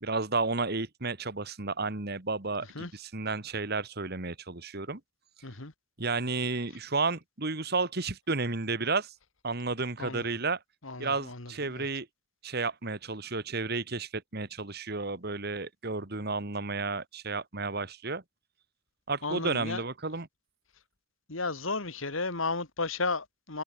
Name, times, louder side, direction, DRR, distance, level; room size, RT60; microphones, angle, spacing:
voice 1, 0.0-5.0 6.0-9.1 9.4-10.6 11.0-12.1 12.4-18.2 19.1-20.3, right 3 dB, 50° right, 1.9 m, -32 dB
voice 2, 10.0-10.4 10.8-11.9 19.2-19.8 21.3-23.6, left 3 dB, 70° left, 2.5 m, -34 dB
head